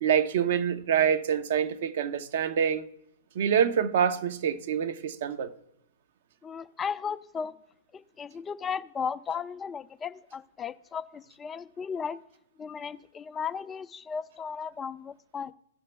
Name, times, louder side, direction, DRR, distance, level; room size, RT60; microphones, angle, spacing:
voice 1, 0.0-2.9 3.3-5.5, right 8 dB, 55° right, 0.8 m, -26 dB
voice 2, 6.4-7.6 7.9-12.2 12.6-15.5, left 6 dB, 20° left, 0.4 m, -35 dB
16.0 x 5.8 x 3.3 m
figure-of-eight pair, 110°, 0 cm